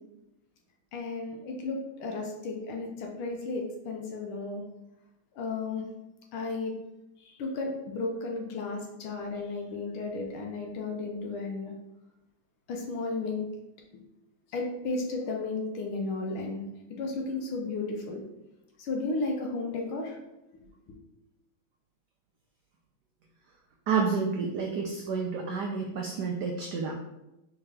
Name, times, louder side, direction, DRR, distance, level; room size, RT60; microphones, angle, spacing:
voice 1, 0.9-4.6 5.4-5.8 6.3-6.7 7.2-11.7 12.7-13.5 14.5-16.6 17.0-18.2 18.8-20.2 20.5-20.9, left 3 dB, 80° left, 1 dB, 1.5 m, -34 dB
voice 2, 23.9-26.9, right 5 dB, 85° right, 1 dB, 0.9 m, -29 dB
3.7 x 3.5 x 3.2 m, 0.94 s
omnidirectional pair, 2.3 m